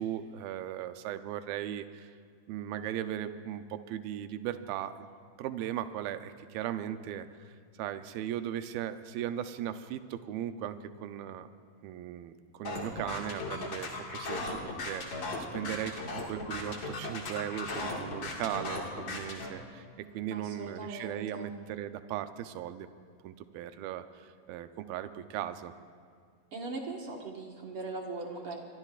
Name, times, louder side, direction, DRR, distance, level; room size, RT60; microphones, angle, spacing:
voice 1, 0.0-2.1 2.5-5.1 5.4-7.5 7.8-11.5 11.8-19.9 20.1-22.9 23.2-25.7, right 11 dB, 80° right, 9 dB, 2.4 m, -38 dB
sound 1, 12.6-19.5, left 3 dB, 40° left, 1.8 m, -37 dB
voice 2, 20.3-21.5 26.5-28.6, right 3 dB, 55° right, -1 dB, 1.6 m, -40 dB
25.0 x 23.0 x 2.5 m, 2.1 s
omnidirectional pair, 4.5 m